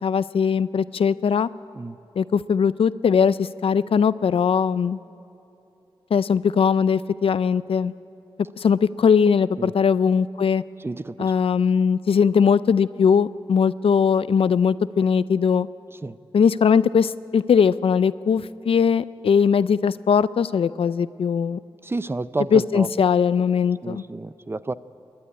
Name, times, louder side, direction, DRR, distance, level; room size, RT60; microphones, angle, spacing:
voice 1, 0.0-1.5 2.2-5.0 6.1-7.9 8.6-10.6 11.2-15.7 16.3-21.6 22.5-24.0, left 6 dB, 90° left, 16 dB, 0.5 m, -20 dB
voice 2, 10.8-11.3 16.0-16.2 21.8-22.9 23.8-24.7, right 2 dB, 25° right, 15 dB, 0.5 m, -30 dB
26.5 x 11.5 x 9.8 m, 2.7 s
wide cardioid pair, 95°, 9 cm